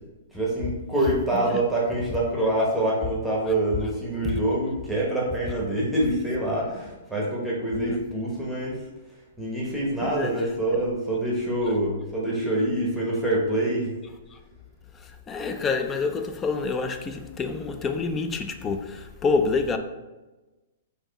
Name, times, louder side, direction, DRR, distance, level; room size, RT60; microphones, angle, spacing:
voice 1, 0.3-8.8 9.4-13.9, right 1 dB, ahead, 1.0 m, -26 dB
voice 2, 10.0-10.3 14.3-14.4 15.0-19.8, left 4 dB, 15° left, 0.4 m, -28 dB
4.2 x 3.0 x 4.0 m
hypercardioid pair, 155°, 0 cm